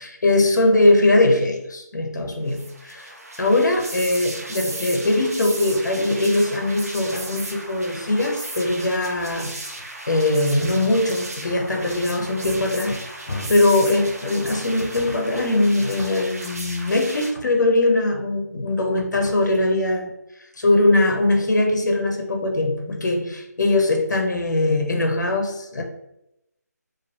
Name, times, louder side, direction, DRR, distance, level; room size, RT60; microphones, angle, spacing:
voice 1, 0.0-9.5 10.1-20.1 20.6-25.8, left 2 dB, 85° left, 2 dB, 0.6 m, -21 dB
sound 1, 2.5-17.3, right 2 dB, 60° right, 0.6 m, -36 dB
2.6 x 2.3 x 2.3 m, 0.84 s
figure-of-eight pair, 170°, 10 cm